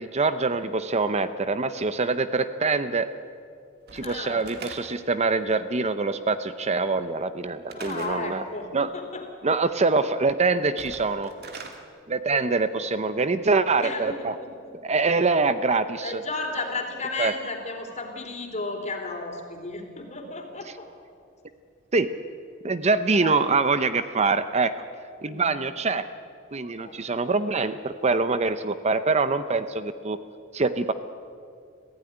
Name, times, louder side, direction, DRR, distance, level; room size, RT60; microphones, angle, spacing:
voice 1, 0.0-3.1 3.9-8.4 8.7-8.9 9.4-11.3 12.1-14.3 14.8-16.1 17.2-17.3 21.9-22.1 22.6-24.7 25.2-26.0 26.5-30.2 30.5-30.9, right 3 dB, 35° right, 11 dB, 0.7 m, -24 dB
voice 2, 3.9-4.5 7.7-9.3 12.3-12.8 13.8-14.7 16.0-20.9 22.7-22.8 23.1-23.4 25.2-25.5 26.8-27.0, left 3 dB, 35° left, 3 dB, 3.5 m, -34 dB
Slam / Wood, 3.9-5.2 7.7-8.3 10.6-11.8, right 4 dB, 50° right, 2.3 m, -41 dB
25.0 x 15.5 x 10.0 m, 2.4 s
head